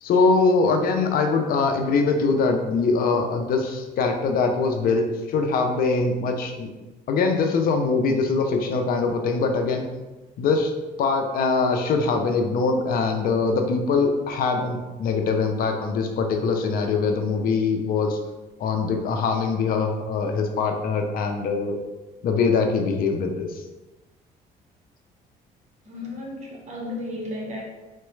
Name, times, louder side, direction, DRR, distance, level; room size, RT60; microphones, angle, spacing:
voice 1, 0.0-6.7 7.1-9.8 10.4-10.7 11.0-18.2 18.6-21.8 22.2-23.6, left 4 dB, 60° left, 3 dB, 0.5 m, -23 dB
voice 2, 25.9-27.6, left 1 dB, 45° right, -2 dB, 1.0 m, -33 dB
3.8 x 2.2 x 3.2 m, 1.1 s
cardioid pair, 110°, 17 cm